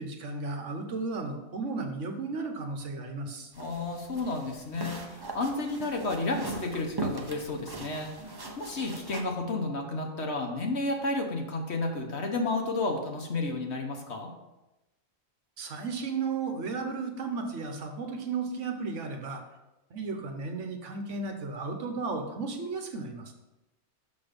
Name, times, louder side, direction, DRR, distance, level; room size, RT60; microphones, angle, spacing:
voice 1, 0.0-3.5 15.6-19.4 19.9-23.4, right 4 dB, 60° right, 4 dB, 1.2 m, -34 dB
sound 1, 3.5-9.2, right 2 dB, 25° right, 0.5 m, -39 dB
voice 2, 3.6-14.3, left 2 dB, 55° left, 3 dB, 1.3 m, -32 dB
6.5 x 6.0 x 5.2 m, 0.99 s
omnidirectional pair, 1.4 m